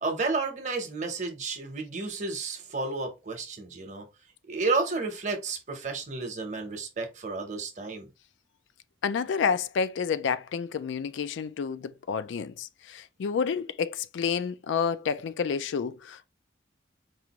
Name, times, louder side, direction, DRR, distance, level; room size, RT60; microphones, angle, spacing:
voice 1, 0.0-4.1 4.5-8.1, right 3 dB, 40° right, 0.8 m, -31 dB
voice 2, 9.0-16.3, left 6 dB, 80° left, 0.3 m, -29 dB
4.8 x 2.5 x 2.9 m
head